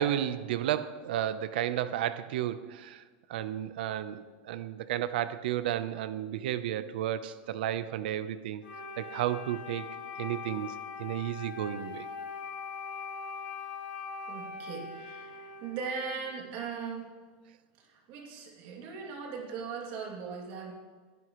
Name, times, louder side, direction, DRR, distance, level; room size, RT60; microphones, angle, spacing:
voice 1, 0.0-3.0 3.3-8.6 9.0-12.1, right 11 dB, 75° right, 13 dB, 0.8 m, -33 dB
Wind instrument woodwind instrument, 8.6-16.3, left 5 dB, 80° left, 3.1 m, -41 dB
voice 2, 14.3-17.1 17.8-20.7, right 5 dB, 40° right, 0 dB, 2.7 m, -39 dB
21.5 x 11.0 x 3.1 m, 1.4 s
supercardioid pair, 175°, 5 cm